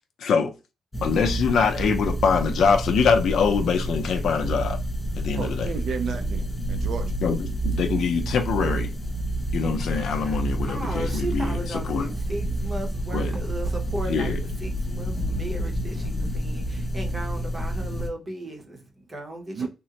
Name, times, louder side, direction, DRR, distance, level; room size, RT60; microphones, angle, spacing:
voice 1, 0.2-0.5 1.0-4.8 5.1-5.7 7.2-8.9 9.5-11.6 11.9-12.1 13.1-13.3 14.1-14.4, left 5 dB, 65° left, 0.5 m, -24 dB
sound 1, 0.9-18.1, right 1 dB, 10° left, 0.5 m, -29 dB
voice 2, 5.4-7.1 19.5-19.7, right 5 dB, 65° right, 0.5 m, -32 dB
voice 3, 10.1-14.3 14.6-19.7, right 1 dB, 20° right, 0.8 m, -36 dB
3.6 x 2.1 x 2.8 m
wide cardioid pair, 175°, 0 cm